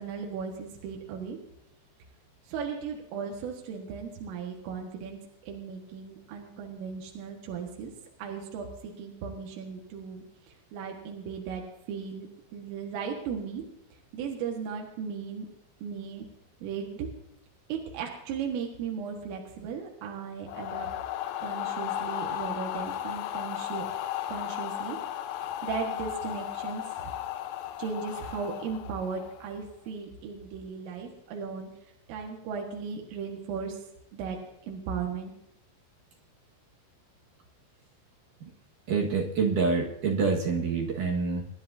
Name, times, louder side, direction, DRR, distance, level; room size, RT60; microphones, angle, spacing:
voice 1, 0.0-1.4 2.5-7.9 8.2-10.2 10.7-11.6 11.9-12.3 12.5-13.6 14.1-15.5 15.8-16.3 16.6-17.1 17.7-20.9 21.4-23.9 24.3-25.0 25.6-27.1 27.8-31.7 32.1-33.8 34.1-34.4 34.7-35.3, right 6 dB, 80° right, 1 dB, 4.2 m, -36 dB
sound 1, 20.5-29.6, left 12 dB, 80° left, 3.5 m, -35 dB
voice 2, 38.9-41.4, right 4 dB, 60° right, -1 dB, 2.4 m, -26 dB
27.0 x 10.5 x 2.7 m, 0.83 s
omnidirectional pair, 5.7 m